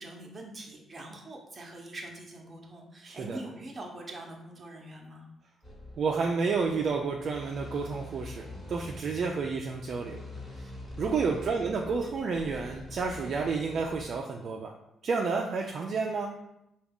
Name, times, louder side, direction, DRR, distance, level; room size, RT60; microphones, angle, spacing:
voice 1, 0.0-5.3 11.1-11.5, right 2 dB, 30° right, 0 dB, 0.9 m, -44 dB
voice 2, 3.0-3.4 6.0-10.2 10.6-10.7 11.0-14.7 15.0-16.3, right 4 dB, 55° right, 1 dB, 0.4 m, -30 dB
sound 1, 5.6-14.0, left 1 dB, 15° left, 1.4 m, -45 dB
4.6 x 2.3 x 3.5 m, 0.84 s
cardioid pair, 90°, 0 cm